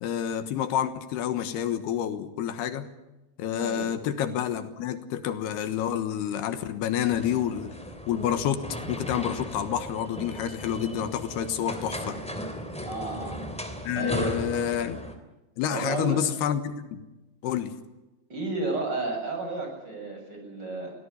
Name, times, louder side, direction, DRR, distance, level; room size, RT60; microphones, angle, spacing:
voice 1, 0.0-2.9 3.4-7.7 8.1-8.6 8.9-12.2 13.8-15.0 15.6-17.0 17.4-17.7, left 9 dB, 80° left, 10 dB, 3.3 m, -28 dB
voice 2, 3.6-4.0 12.9-13.5 14.0-14.4 15.7-16.2 18.3-20.9, right 3 dB, 25° right, 2 dB, 7.5 m, -32 dB
sound 1, 7.0-15.1, equal, ahead, 2.2 m, -37 dB
24.0 x 17.5 x 9.7 m, 1.0 s
omnidirectional pair, 4.7 m